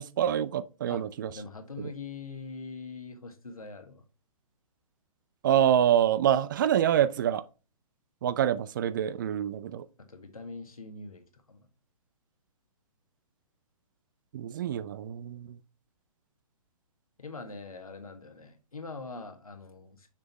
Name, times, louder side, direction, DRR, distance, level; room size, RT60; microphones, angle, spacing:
voice 1, 0.0-1.3 1.8-1.9 5.4-7.4 8.2-9.9 14.3-15.6, right 10 dB, 35° right, 0.4 m, -26 dB
voice 2, 1.3-4.0 10.1-11.7 17.2-20.1, left 4 dB, 75° left, 1.6 m, -43 dB
6.7 x 5.1 x 3.0 m
figure-of-eight pair, 125°, 19 cm